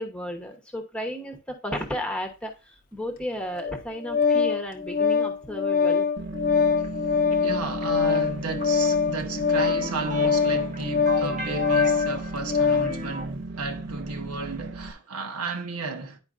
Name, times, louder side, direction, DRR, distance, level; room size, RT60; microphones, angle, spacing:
voice 1, 0.0-6.1, left 1 dB, 5° left, 0.9 m, -33 dB
Organ, 3.6-13.0, left 5 dB, 40° left, 0.8 m, -24 dB
sound 1, 6.2-14.9, right 2 dB, 50° right, 0.5 m, -36 dB
sound 2, 6.8-13.3, equal, 35° right, 0.8 m, -36 dB
voice 2, 7.4-16.2, right 3 dB, 90° right, 1.1 m, -33 dB
10.5 x 4.5 x 2.5 m
head